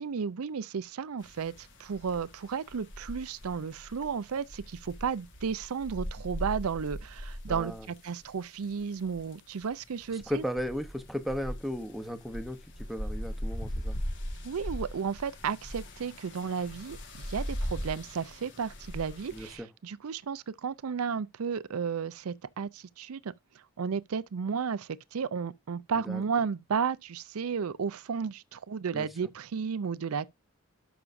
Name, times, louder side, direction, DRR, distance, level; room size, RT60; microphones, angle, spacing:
voice 1, 0.0-10.4 14.4-23.3 23.8-30.3, right 6 dB, 80° right, 0.5 m, -33 dB
sound 1, 1.2-19.6, equal, 55° left, 1.6 m, -40 dB
voice 2, 7.5-7.9 10.1-14.0 19.3-19.7 25.9-26.2 28.9-29.1, equal, ahead, 0.8 m, -36 dB
12.0 x 6.0 x 2.6 m
head